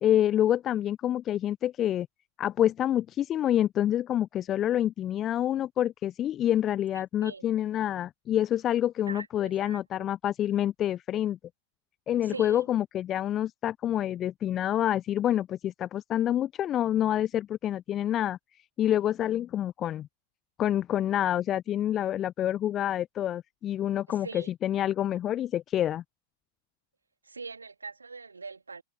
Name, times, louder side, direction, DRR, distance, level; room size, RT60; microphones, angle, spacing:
voice 1, 0.0-2.1 2.4-11.4 12.1-18.4 18.8-20.1 20.6-26.0, left 11 dB, 30° left, 0.9 m, -27 dB
voice 2, 9.1-10.1 12.2-12.6 24.1-24.5 27.2-28.8, right 4 dB, 75° right, 3.4 m, -42 dB
figure-of-eight pair, 90°, 0 cm